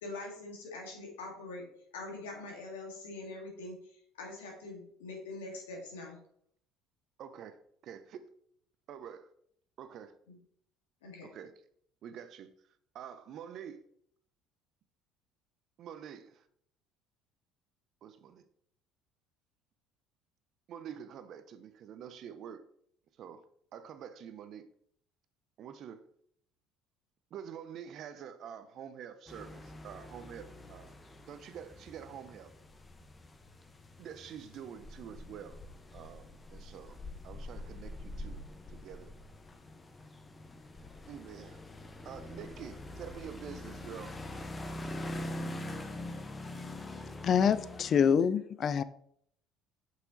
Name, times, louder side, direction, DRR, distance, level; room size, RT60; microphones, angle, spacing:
voice 1, 0.0-1.6 1.9-3.8 4.1-6.2 10.3-10.4 11.0-11.3, left 2 dB, 85° left, 1.9 m, -43 dB
voice 2, 7.2-8.3 8.9-9.3 9.8-10.1 11.2-11.5 12.0-12.5 12.9-13.8 15.8-16.4 18.0-18.4 20.7-22.6 23.2-23.4 23.7-24.7 25.6-26.0 27.3-30.9 31.3-32.5 34.0-35.6 35.9-37.0 37.2-38.4 38.7-39.1 41.1-41.6 42.0-44.1 48.7-48.8, right 8 dB, 55° right, 0.7 m, -47 dB
sound 1, 29.3-48.1, left 1 dB, 25° left, 1.0 m, -44 dB
voice 3, 47.2-48.8, left 7 dB, 50° left, 0.4 m, -26 dB
6.0 x 5.7 x 3.9 m
hypercardioid pair, 65°, 0 cm